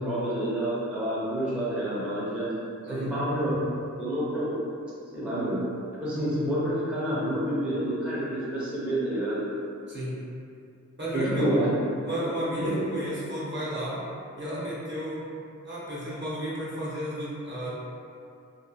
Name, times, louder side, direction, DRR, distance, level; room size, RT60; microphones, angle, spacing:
voice 1, 0.0-2.5 2.9-3.6 4.0-4.6 5.1-5.6 6.0-9.4 11.1-11.7 12.6-12.7, right 1 dB, 5° right, -9 dB, 0.6 m, -28 dB
voice 2, 11.0-14.0 14.3-15.2 15.6-17.7, equal, 35° right, -8 dB, 0.8 m, -32 dB
2.7 x 2.3 x 2.3 m, 2.5 s
wide cardioid pair, 85°, 31 cm